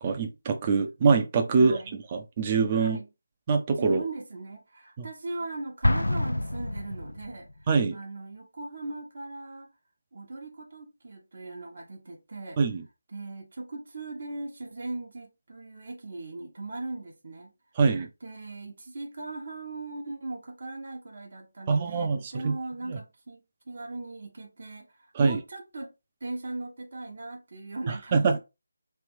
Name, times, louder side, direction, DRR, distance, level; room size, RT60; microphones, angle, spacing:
voice 1, 0.0-1.8 2.1-3.0 3.5-4.0 5.0-5.1 7.7-8.0 12.6-12.8 17.8-18.1 21.7-22.5 22.9-23.0 25.1-25.4 28.1-28.4, right 4 dB, 30° right, 0.8 m, -24 dB
voice 2, 1.6-2.0 2.7-3.1 3.8-7.5 7.9-9.7 10.1-12.6 13.1-17.5 18.2-23.4 23.7-25.9 26.2-28.4, right 2 dB, 55° right, 1.2 m, -39 dB
Explosion, 5.8-7.5, left 1 dB, 90° left, 0.6 m, -27 dB
3.4 x 2.9 x 4.7 m
figure-of-eight pair, 160°, 0 cm